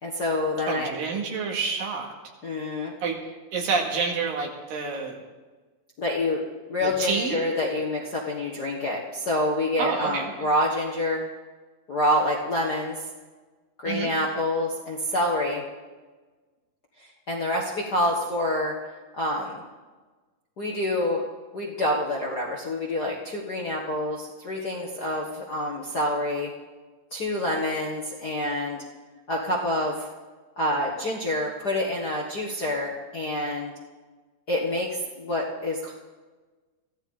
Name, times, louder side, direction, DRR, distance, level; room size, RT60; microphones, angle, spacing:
voice 1, 0.0-0.9 2.4-2.9 6.0-6.4 6.7-11.3 11.9-13.0 13.8-15.6 17.0-18.7 19.1-19.6 20.6-21.2 21.5-26.5 27.1-28.8 29.3-30.1 30.6-33.7 34.5-35.9, left 1 dB, 45° left, -3 dB, 1.4 m, -27 dB
voice 2, 0.7-2.1 3.0-3.2 3.5-5.2 6.8-7.4 9.8-10.3 13.8-14.1, right 5 dB, 75° right, 1 dB, 3.7 m, -28 dB
23.5 x 15.5 x 3.8 m, 1.3 s
omnidirectional pair, 4.0 m